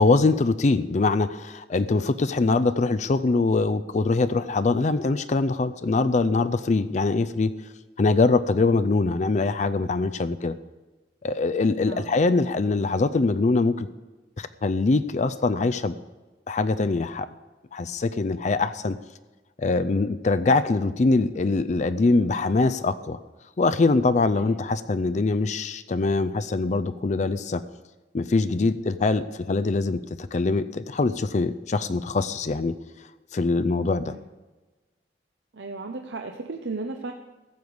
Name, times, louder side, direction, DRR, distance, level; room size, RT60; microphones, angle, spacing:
voice 1, 0.0-7.5 8.0-10.5 11.2-13.9 14.4-15.9 16.5-17.3 17.7-19.0 19.6-23.2 23.6-27.6 28.1-32.7 33.3-34.1, left 3 dB, 40° left, 12 dB, 0.4 m, -23 dB
voice 2, 11.8-12.1 24.3-24.5 34.1-34.2 35.5-37.1, right 3 dB, 85° right, 4 dB, 0.8 m, -35 dB
14.5 x 6.9 x 7.9 m, 1.2 s
head